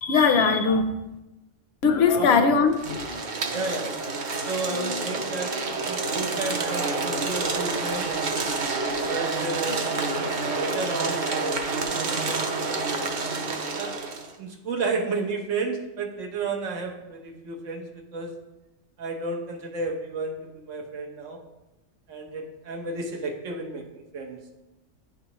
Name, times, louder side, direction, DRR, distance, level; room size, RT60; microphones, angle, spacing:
voice 1, 0.0-0.9 1.8-3.2, left 5 dB, 65° left, 5 dB, 0.8 m, -20 dB
sound 1, 2.7-14.3, right 3 dB, 50° right, 0.7 m, -28 dB
voice 2, 3.5-3.9 4.5-8.1 9.1-9.9 10.5-12.2 13.7-14.0 14.4-18.3 19.0-21.4 22.1-24.4, right 3 dB, 85° right, 2 dB, 1.2 m, -32 dB
9.7 x 3.6 x 2.9 m, 1.0 s
omnidirectional pair, 1.2 m